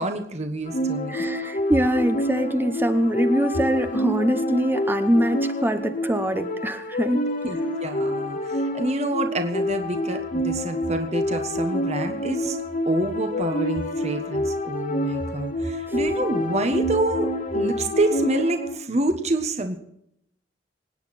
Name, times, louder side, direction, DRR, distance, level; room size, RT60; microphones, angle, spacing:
voice 1, 0.0-1.2 7.4-12.6 12.8-19.8, right 2 dB, 40° right, 6 dB, 1.4 m, -27 dB
sound 1, 0.7-18.8, left 1 dB, 50° left, 2.1 m, -28 dB
voice 2, 1.1-7.2, equal, 10° right, 8 dB, 1.0 m, -23 dB
25.5 x 9.6 x 4.3 m, 0.77 s
head